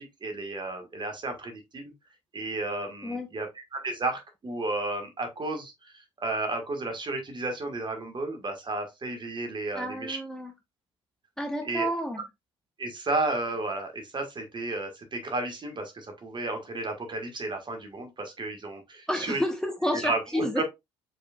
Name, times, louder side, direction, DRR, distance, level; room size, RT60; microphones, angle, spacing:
voice 1, 0.0-1.9 2.3-10.2 11.6-11.8 12.8-19.4 19.9-20.6, right 2 dB, 35° right, 1.7 m, -33 dB
voice 2, 9.7-10.5 11.4-12.2 19.1-20.6, equal, 5° left, 1.1 m, -30 dB
4.9 x 4.6 x 2.4 m
hypercardioid pair, 55°, 14 cm